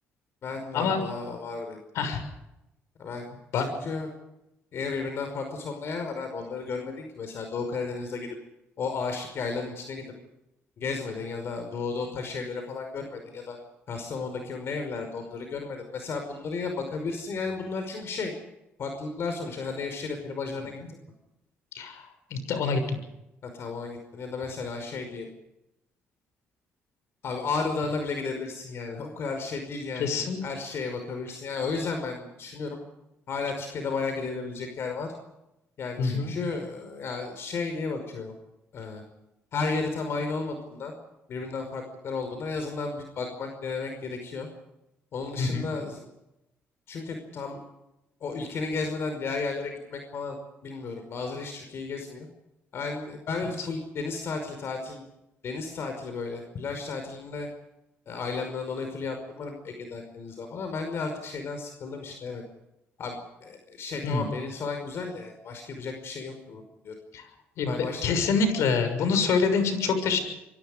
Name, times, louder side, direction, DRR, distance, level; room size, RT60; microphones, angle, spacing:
voice 1, 0.4-1.8 3.0-3.3 3.5-4.1 4.7-8.3 8.8-10.1 10.8-13.6 13.9-18.3 18.8-21.0 23.4-25.3 27.2-32.8 33.3-35.1 35.8-38.3 38.7-39.0 39.5-40.9 41.3-44.5 45.1-46.1 46.9-47.6 48.2-52.3 52.7-55.0 55.4-57.5 58.1-62.4 63.0-66.9 67.7-68.2, left 4 dB, 60° left, 5 dB, 5.3 m, -33 dB
voice 2, 21.7-23.0 30.0-30.4 36.0-36.3 45.4-45.7 53.4-53.7 64.0-64.3 67.1-67.3 67.6-70.2, left 5 dB, 80° left, 9 dB, 6.5 m, -26 dB
27.0 x 23.5 x 5.2 m, 0.91 s
cardioid pair, 100°, 5 cm